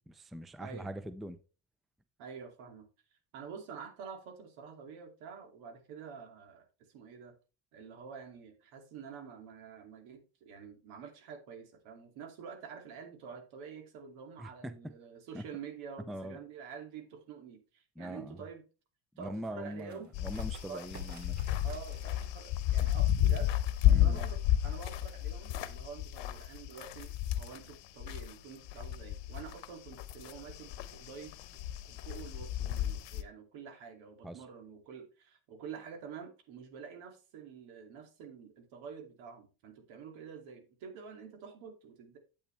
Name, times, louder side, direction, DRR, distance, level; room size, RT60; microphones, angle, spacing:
voice 1, 0.1-1.4 14.4-14.7 15.3-15.4 16.1-16.4 18.0-18.4 19.1-21.4 23.9-24.2 34.2-34.4, equal, ahead, 0.4 m, -42 dB
voice 2, 2.2-7.3 7.7-18.6 19.2-20.1 20.7-20.8 21.6-23.5 23.8-31.3 31.9-42.2, right 6 dB, 85° right, 2.7 m, -48 dB
sound 1, 19.7-25.0, right 1 dB, 35° right, 2.8 m, -55 dB
sound 2, 20.1-28.3 28.6-33.2, left 12 dB, 65° left, 1.0 m, -32 dB
8.9 x 8.5 x 3.3 m
cardioid pair, 130°, 47 cm